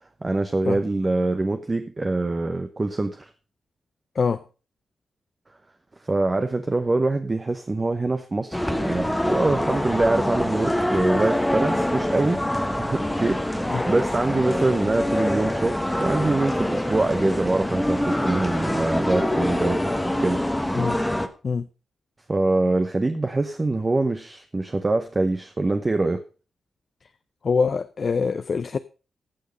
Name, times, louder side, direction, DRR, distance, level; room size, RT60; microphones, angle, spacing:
voice 1, 0.2-3.3 6.0-12.4 12.8-20.4 22.3-26.2, right 2 dB, 25° right, 0.8 m, -24 dB
sound 1, 8.5-21.3, left 1 dB, 5° left, 1.1 m, -25 dB
voice 2, 27.4-28.8, left 5 dB, 45° left, 0.5 m, -24 dB
15.5 x 6.3 x 5.2 m
wide cardioid pair, 120°, 0 cm